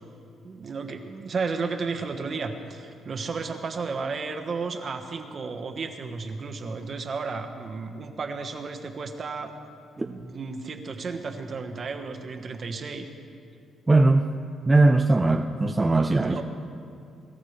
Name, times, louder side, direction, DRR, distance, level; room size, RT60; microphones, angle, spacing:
voice 1, 0.4-9.5 10.0-13.1 16.2-16.4, right 4 dB, 45° right, 5 dB, 1.3 m, -33 dB
voice 2, 13.9-14.3 14.7-16.4, right 2 dB, 20° right, 3 dB, 0.6 m, -20 dB
22.5 x 14.0 x 3.4 m, 2.4 s
cardioid pair, 90°, 0 cm